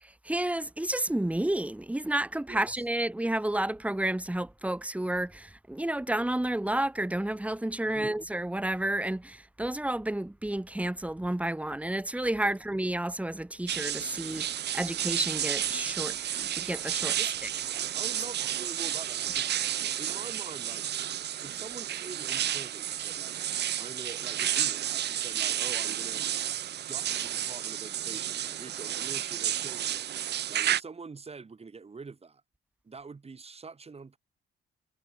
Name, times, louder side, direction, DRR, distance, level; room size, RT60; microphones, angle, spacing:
voice 1, 0.2-16.1 16.6-17.2, right 1 dB, 5° right, 1.5 m, -31 dB
voice 2, 2.5-2.8 7.9-8.2 12.4-12.6 17.2-17.3 17.9-19.5 20.0-20.9 21.4-23.4 23.8-26.3 26.9-30.1 30.5-32.4 32.8-34.2, right 4 dB, 30° right, 4.4 m, -45 dB
sound 1, 13.7-30.8, right 11 dB, 60° right, 0.7 m, -31 dB
cardioid pair, 90°, 20 cm